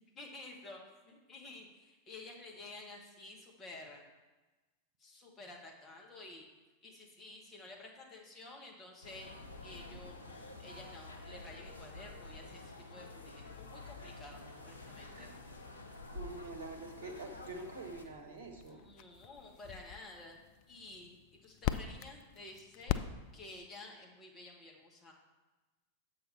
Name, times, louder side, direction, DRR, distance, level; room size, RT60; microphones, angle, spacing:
voice 1, 0.1-4.0 5.0-6.4 6.8-9.4 9.6-15.3 18.7-20.4 20.7-23.0 23.3-25.1, left 2 dB, 25° left, 0 dB, 1.4 m, -52 dB
sound 1, 9.0-18.0, left 2 dB, 80° left, 0.7 m, -49 dB
sound 2, 9.3-23.7, left 11 dB, 45° left, 0.3 m, -45 dB
voice 2, 16.1-18.8, right 3 dB, 65° right, 5 dB, 1.0 m, -46 dB
7.6 x 5.8 x 3.4 m, 1.2 s
figure-of-eight pair, 90°, 0 cm